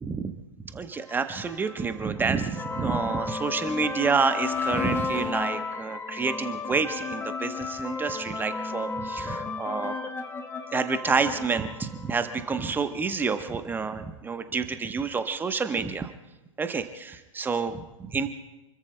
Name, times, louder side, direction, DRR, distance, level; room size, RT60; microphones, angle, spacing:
voice 1, 0.0-0.3 0.6-9.9 10.7-16.1 16.6-18.3, right 5 dB, 10° right, 9 dB, 0.9 m, -28 dB
sound 1, 1.0-12.8, left 4 dB, 15° left, 1.4 m, -34 dB
29.0 x 21.5 x 2.2 m, 1.1 s
figure-of-eight pair, 110°, 16 cm